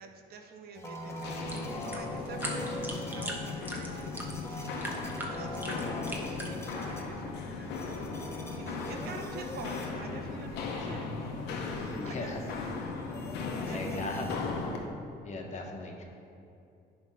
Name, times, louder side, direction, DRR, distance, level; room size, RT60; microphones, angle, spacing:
voice 1, 0.0-4.8 5.3-7.7 8.6-12.8 13.6-14.5, right 4 dB, 65° right, 5 dB, 0.8 m, -48 dB
sound 1, 0.7-14.8, left 1 dB, 15° left, 0.9 m, -43 dB
Walk footsteps, 1.1-14.9, left 4 dB, 85° left, 0.9 m, -37 dB
sound 2, 1.2-6.9, right 1 dB, 10° right, 1.1 m, -41 dB
voice 2, 12.0-12.4 13.7-14.3 15.2-16.0, left 3 dB, 45° left, 1 dB, 1.2 m, -38 dB
10.5 x 3.5 x 5.5 m, 2.6 s
cardioid pair, 110°, 17 cm